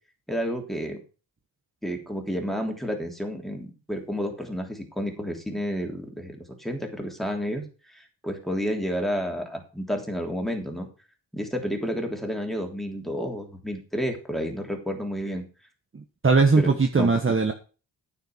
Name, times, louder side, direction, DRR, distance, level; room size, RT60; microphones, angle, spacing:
voice 1, 0.3-1.0 1.8-7.6 7.9-10.9 11.3-15.4 16.6-17.1, equal, ahead, 3 dB, 3.3 m, -30 dB
voice 2, 15.9-17.5, right 4 dB, 30° right, 5 dB, 1.3 m, -20 dB
9.4 x 7.0 x 6.3 m, 0.35 s
cardioid pair, 75°, 43 cm